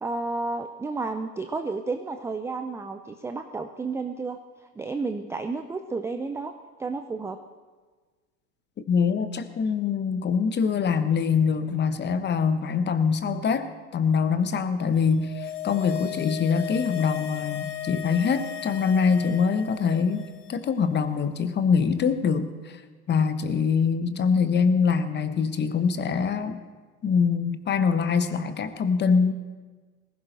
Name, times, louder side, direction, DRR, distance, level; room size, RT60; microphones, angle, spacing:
voice 1, 0.0-4.4 4.8-6.5 6.8-7.4, right 3 dB, 5° right, 7 dB, 0.4 m, -31 dB
voice 2, 8.9-22.7 23.1-26.6 27.0-29.3, left 6 dB, 25° left, 11 dB, 1.0 m, -24 dB
sound 1, 15.0-20.5 20.8-20.9, left 11 dB, 75° left, 1.8 m, -35 dB
19.0 x 16.0 x 4.0 m, 1.4 s
hypercardioid pair, 95°, 45 cm